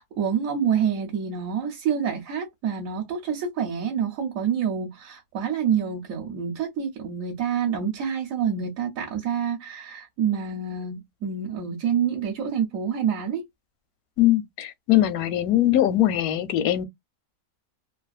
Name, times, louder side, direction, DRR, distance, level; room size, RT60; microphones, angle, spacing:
voice 1, 0.0-13.4, right 7 dB, 70° right, 1.1 m, -27 dB
voice 2, 14.2-16.9, left 13 dB, 85° left, 1.0 m, -21 dB
2.9 x 2.4 x 2.4 m
omnidirectional pair, 1.5 m